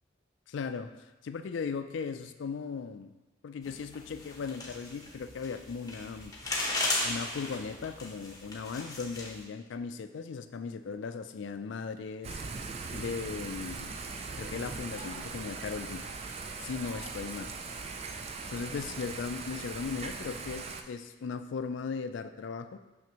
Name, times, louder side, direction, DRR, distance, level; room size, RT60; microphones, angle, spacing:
voice 1, 0.5-3.1 3.4-6.3 7.0-12.4 12.9-13.9 14.4-16.0 16.6-17.5 18.5-22.8, left 5 dB, 75° left, 10 dB, 0.4 m, -37 dB
sound 1, 3.6-9.4, left 2 dB, 20° left, 0.8 m, -36 dB
Thunder / Rain, 12.2-20.8, right 4 dB, 30° right, 0.3 m, -40 dB
6.0 x 5.8 x 3.0 m, 1.1 s
head